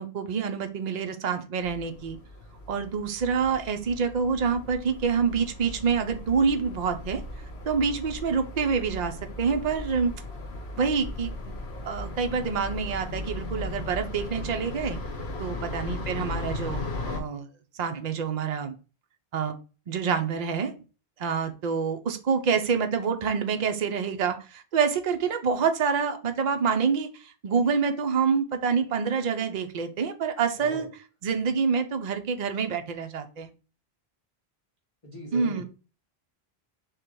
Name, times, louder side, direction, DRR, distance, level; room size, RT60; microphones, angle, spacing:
voice 1, 0.0-2.2 2.7-7.2 7.7-10.1 10.8-11.5 11.8-15.0 15.4-17.5 17.8-18.7 19.3-19.6 19.9-20.7 21.2-27.1 27.4-30.9 31.2-33.5 35.3-35.6, right 6 dB, 50° right, 6 dB, 0.6 m, -27 dB
sound 1, 1.6-17.2, left 2 dB, 80° left, 1.0 m, -37 dB
voice 2, 15.3-15.7 30.6-30.9 35.0-35.6, left 1 dB, 30° left, -4 dB, 1.1 m, -41 dB
3.7 x 2.8 x 4.5 m, 0.34 s
omnidirectional pair, 1.1 m